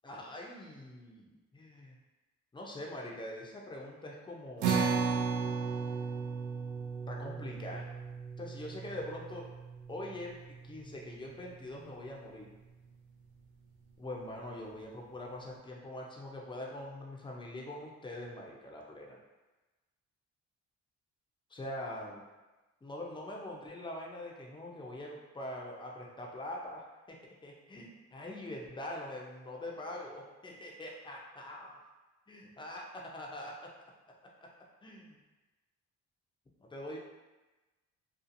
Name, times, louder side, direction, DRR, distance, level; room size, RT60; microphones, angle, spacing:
voice 1, 0.0-2.0 2.5-4.9 7.1-7.9 8.4-9.5 9.9-10.4 10.6-12.5 14.0-19.2 21.5-22.2 22.8-31.8 32.3-33.7 34.8-35.2 36.6-37.0, left 1 dB, 15° left, -1 dB, 0.5 m, -43 dB
sound 1, 4.6-11.2, right 5 dB, 75° right, 0.5 m, -35 dB
2.7 x 2.4 x 2.6 m, 1.1 s
cardioid pair, 90°, 30 cm